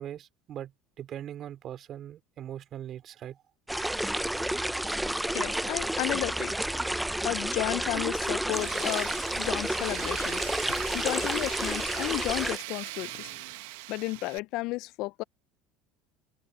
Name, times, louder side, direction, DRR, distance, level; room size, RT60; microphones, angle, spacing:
voice 1, 0.0-3.4, right 10 dB, 45° right, 3.6 m, -41 dB
sound 1, 3.7-12.6, right 1 dB, 5° right, 0.4 m, -30 dB
voice 2, 5.3-6.5 7.0-10.5 10.9-13.3 13.9-15.2, left 21 dB, 65° left, 0.4 m, -33 dB
Engine / Trickle dribble / Fill (with liquid), 7.8-12.4, left 4 dB, 20° left, 3.7 m, -44 dB
Tools, 8.5-14.4, right 20 dB, 80° right, 0.8 m, -40 dB
supercardioid pair, 110°, 0 cm